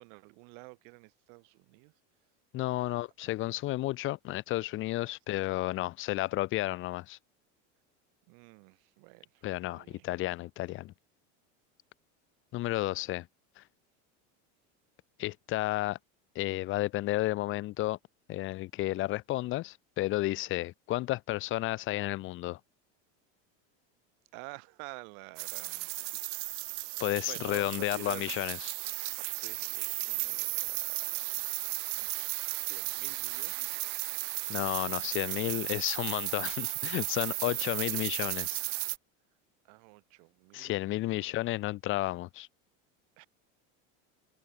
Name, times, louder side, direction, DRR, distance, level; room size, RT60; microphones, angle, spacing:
voice 1, 0.0-1.9 2.7-3.0 8.3-10.1 24.3-28.3 29.3-31.5 31.9-33.8 37.5-37.6 39.6-41.3 43.2-43.3, right 40 dB or more, 60° right, 7.7 m, -50 dB
voice 2, 2.5-7.2 9.4-10.9 12.5-13.3 13.6-13.7 15.2-16.0 16.3-18.0 18.3-22.6 27.0-29.0 34.5-38.6 40.5-42.5, left 17 dB, 35° left, 0.9 m, -32 dB
sound 1, 25.4-39.0, right 25 dB, 75° right, 0.8 m, -35 dB
supercardioid pair, 160°, 37 cm